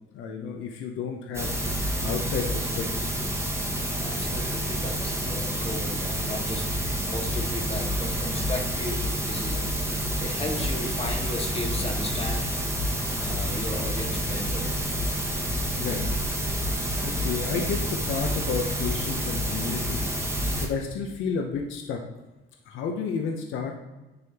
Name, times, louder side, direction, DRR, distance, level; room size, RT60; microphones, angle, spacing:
voice 1, 0.1-1.6 2.0-3.1 15.7-16.4 17.0-20.1 20.6-22.0 22.7-23.7, left 5 dB, 80° left, 2 dB, 0.7 m, -31 dB
sound 1, 1.3-20.7, equal, 15° right, 1.2 m, -28 dB
voice 2, 4.0-6.7 7.1-12.5 13.2-14.8, left 2 dB, 30° left, 1 dB, 1.4 m, -35 dB
9.7 x 3.5 x 2.8 m, 1.1 s
cardioid pair, 90°, 20 cm